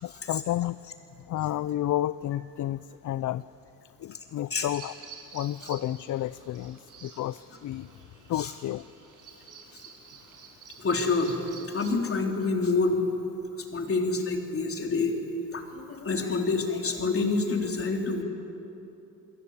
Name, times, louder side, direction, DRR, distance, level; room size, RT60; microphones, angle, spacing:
voice 1, 0.0-0.9 1.3-3.4 4.0-4.9 5.3-7.9 8.3-8.9, left 13 dB, 60° left, 16 dB, 0.5 m, -31 dB
Bird vocalization bird call bird song, 4.7-11.9, right 6 dB, 65° right, 6.3 m, -49 dB
voice 2, 10.8-11.4 11.7-13.0 13.7-15.2 15.5-18.2, left 3 dB, 40° left, 1 dB, 3.8 m, -27 dB
29.5 x 22.5 x 8.3 m, 2.9 s
cardioid pair, 120°, 34 cm